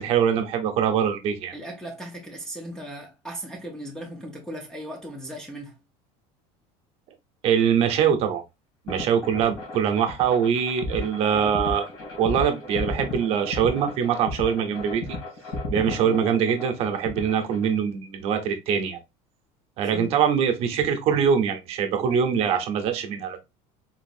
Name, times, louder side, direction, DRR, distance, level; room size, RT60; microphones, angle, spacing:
voice 1, 0.0-1.5 7.4-8.4 8.8-11.9 12.2-15.2 15.7-19.0 19.8-23.4, right 7 dB, 40° right, 0.7 m, -23 dB
voice 2, 1.5-5.8 16.0-16.2 19.8-20.2, right 1 dB, 5° left, 0.4 m, -37 dB
sound 1, 8.9-17.8, left 2 dB, 80° left, 2.2 m, -34 dB
3.9 x 2.5 x 2.5 m
cardioid pair, 175°, 15 cm